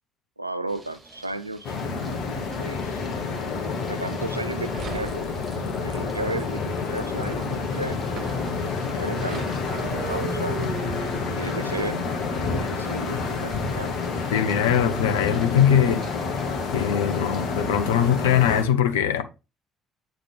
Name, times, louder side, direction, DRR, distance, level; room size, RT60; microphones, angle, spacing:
voice 1, 0.4-1.8 2.3-3.0 3.9-5.2 5.8-8.0 8.3-8.5 8.8-10.6 11.4-12.1 12.4-13.9, right 2 dB, 90° right, 0.4 m, -34 dB
sound 1, 0.7-18.5, right 2 dB, 30° right, 2.7 m, -49 dB
sound 2, 1.6-18.6, left 4 dB, 55° left, 1.4 m, -29 dB
sound 3, 4.7-13.5, right 5 dB, 55° right, 0.9 m, -38 dB
voice 2, 14.3-16.0 16.7-19.2, left 9 dB, 75° left, 0.7 m, -21 dB
8.1 x 4.0 x 3.2 m
figure-of-eight pair, 50°, 0 cm